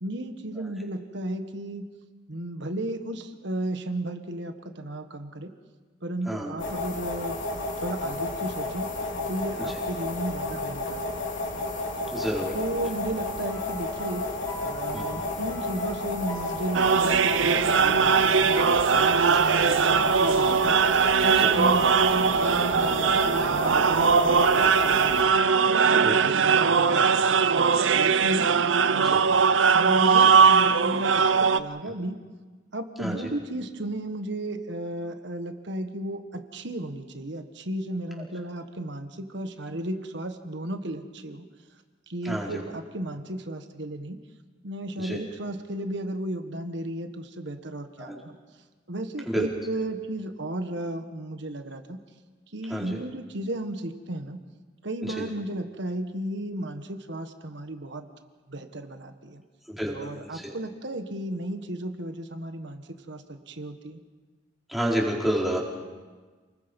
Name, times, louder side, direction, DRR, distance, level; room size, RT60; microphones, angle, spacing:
voice 1, 0.0-1.9 2.3-5.5 6.0-7.4 7.8-8.9 9.3-11.3 12.5-14.3 14.6-20.8 21.2-25.3 25.8-28.5 28.8-29.5 29.7-32.2 32.7-41.5 42.1-44.2 44.6-48.4 48.9-52.0 52.5-54.4 54.8-58.0 58.5-59.4 59.9-64.0, right 1 dB, 65° right, 7 dB, 1.5 m, -34 dB
sound 1, 6.6-25.2, left 2 dB, 75° left, 3.6 m, -32 dB
voice 2, 12.1-12.6 12.8-12.9 14.9-15.1 21.3-21.6 26.0-26.3 29.0-29.3 33.0-33.3 42.2-42.6 45.0-45.2 48.0-48.2 49.3-49.5 52.7-53.0 55.0-55.3 59.7-60.5 64.7-65.6, equal, ahead, -4 dB, 4.3 m, -30 dB
sound 2, 13.5-20.9, left 2 dB, 20° left, 2.6 m, -41 dB
sound 3, 16.7-31.6, right 6 dB, 85° right, 0.7 m, -20 dB
29.0 x 20.5 x 5.4 m, 1.4 s
head